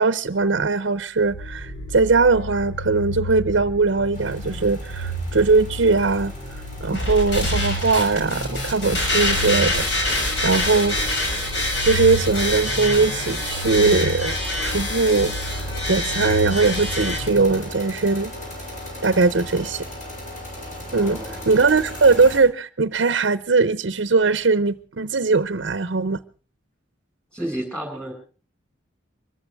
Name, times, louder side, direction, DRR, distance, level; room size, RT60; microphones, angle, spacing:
voice 1, 0.0-6.3 6.8-11.1 11.8-14.4 14.6-18.3 19.0-19.9 20.9-21.2 21.5-26.2, right 4 dB, 65° right, 0.7 m, -20 dB
sound 1, 1.2-18.1, equal, 85° left, 4.3 m, -32 dB
sound 2, 4.1-22.4, equal, 40° left, 6.8 m, -37 dB
sound 3, 6.9-17.2, left 1 dB, 65° left, 6.2 m, -26 dB
voice 2, 20.9-21.5 27.3-28.1, right 1 dB, 5° left, 5.7 m, -33 dB
24.5 x 14.5 x 3.4 m
head